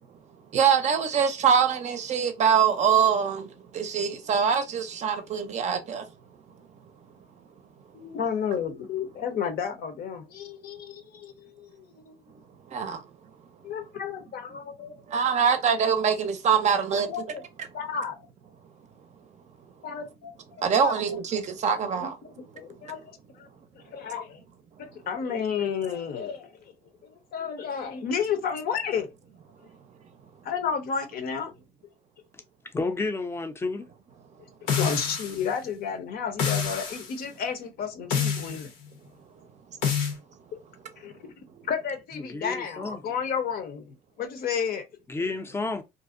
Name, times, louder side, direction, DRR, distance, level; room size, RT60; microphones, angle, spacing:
voice 1, 0.5-6.0 12.7-13.0 15.1-17.3 20.6-22.2, right 7 dB, 45° right, 0.5 m, -24 dB
voice 2, 7.9-12.1 13.6-14.9 17.1-17.4 17.7-18.2 19.8-20.9 21.9-22.1 22.4-23.5 23.8-24.4 24.8-26.5 27.0-29.1 30.4-31.5 34.8-38.7 41.0-41.1 41.7-44.8, left 7 dB, 60° left, 0.7 m, -32 dB
voice 3, 32.7-33.8 42.1-43.0 45.1-45.8, left 3 dB, 15° left, 0.5 m, -31 dB
sound 1, 34.7-35.5 36.4-37.1 38.1-38.7 39.8-40.1, left 7 dB, 85° left, 0.9 m, -27 dB
2.6 x 2.0 x 2.4 m
cardioid pair, 110°, 17 cm